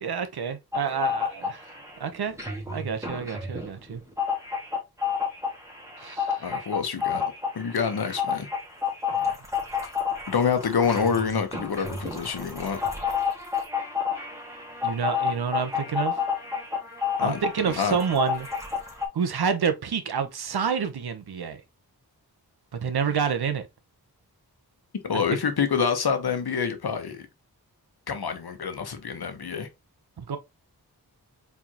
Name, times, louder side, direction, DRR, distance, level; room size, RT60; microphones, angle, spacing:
voice 1, 0.0-1.6 2.0-2.4 2.7-4.0 6.0-6.4 9.1-9.4 14.8-16.2 17.2-18.5 19.1-21.6 22.7-23.7 25.1-25.2 30.2-30.4, right 6 dB, 70° right, 0.8 m, -28 dB
sound 1, 0.7-1.9 2.3-19.1, left 6 dB, 10° right, 1.8 m, -30 dB
voice 2, 6.4-7.2 7.5-8.5 10.3-12.8 17.2-18.0 25.0-27.3 28.1-29.7, left 6 dB, 70° left, 1.0 m, -27 dB
4.6 x 3.5 x 2.9 m
wide cardioid pair, 60°, 39 cm